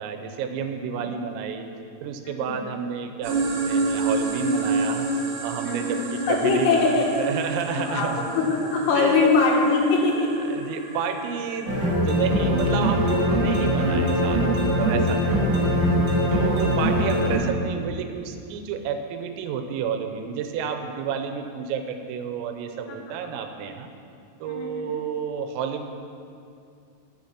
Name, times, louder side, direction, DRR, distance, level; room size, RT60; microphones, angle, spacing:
voice 1, 0.0-1.7 2.0-5.1 5.4-8.2 9.0-9.3 10.5-15.4 16.3-23.9 24.4-25.9, right 7 dB, 90° right, 6 dB, 3.4 m, -30 dB
voice 2, 2.3-2.6 5.6-7.1 7.7-10.3 15.3-15.4 22.9-23.0 23.3-23.4 24.4-25.0, left 4 dB, 85° left, -1 dB, 4.2 m, -23 dB
sound 1, 3.2-12.0, right 3 dB, 70° right, 2.3 m, -29 dB
sound 2, 11.6-17.4, equal, 35° right, 2.9 m, -22 dB
10.5 x 8.0 x 5.8 m, 2.4 s
omnidirectional pair, 5.8 m